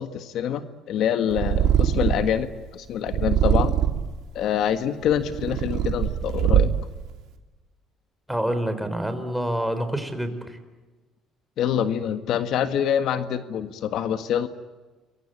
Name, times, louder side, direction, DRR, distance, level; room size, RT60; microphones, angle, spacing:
voice 1, 0.0-3.7 4.3-6.7 11.6-14.5, left 9 dB, 65° left, 9 dB, 1.7 m, -26 dB
Purr, 1.3-2.4 3.1-4.2 4.9-7.0, right 10 dB, 75° right, 3.2 m, -22 dB
voice 2, 8.3-10.6, right 1 dB, 5° right, 9 dB, 4.1 m, -27 dB
28.0 x 23.0 x 8.9 m, 1.3 s
cardioid pair, 110°, 0 cm